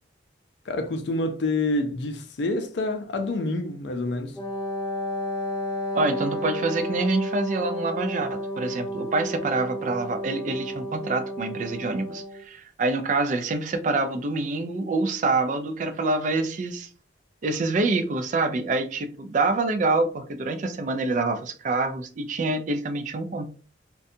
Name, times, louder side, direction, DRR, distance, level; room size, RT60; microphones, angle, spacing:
voice 1, 0.7-4.4, left 2 dB, 65° left, 0.4 m, -27 dB
Wind instrument woodwind instrument, 4.3-12.4, equal, 15° left, 0.7 m, -32 dB
voice 2, 5.9-16.9 17.4-23.5, right 3 dB, 40° right, 0.3 m, -26 dB
2.6 x 2.2 x 2.5 m
head